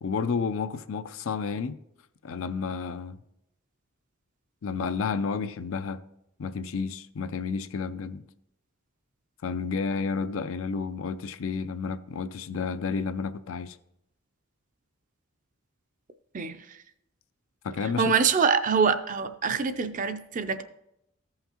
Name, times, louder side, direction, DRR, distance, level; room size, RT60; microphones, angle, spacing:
voice 1, 0.0-1.8 2.2-3.2 4.6-6.0 6.4-8.2 9.4-13.8 17.6-18.1, left 5 dB, 70° left, 0.4 m, -31 dB
voice 2, 18.0-20.6, right 5 dB, 40° right, 0.5 m, -24 dB
14.5 x 5.7 x 2.9 m
head